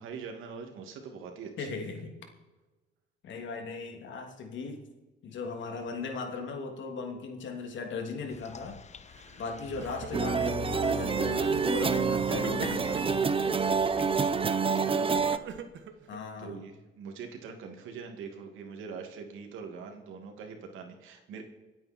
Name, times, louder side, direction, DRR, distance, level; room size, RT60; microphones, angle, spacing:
voice 1, 0.0-1.8 14.7-15.5 16.4-21.4, right 5 dB, 90° right, 4 dB, 2.5 m, -43 dB
voice 2, 1.6-2.1 3.2-4.8 5.2-8.8 9.4-13.2 16.1-16.6, left 4 dB, 70° left, 3 dB, 2.9 m, -37 dB
sound 1, 8.3-14.5, left 9 dB, 35° left, 0.8 m, -45 dB
Crying sobbing, 9.1-9.4 9.7-10.7 11.2-11.7 12.3-13.3 14.2-16.4, right 7 dB, 70° right, 1.4 m, -44 dB
sound 2, 10.1-15.4, right 5 dB, 25° right, 0.8 m, -27 dB
26.5 x 9.1 x 4.5 m, 1.2 s
cardioid pair, 90°, 20 cm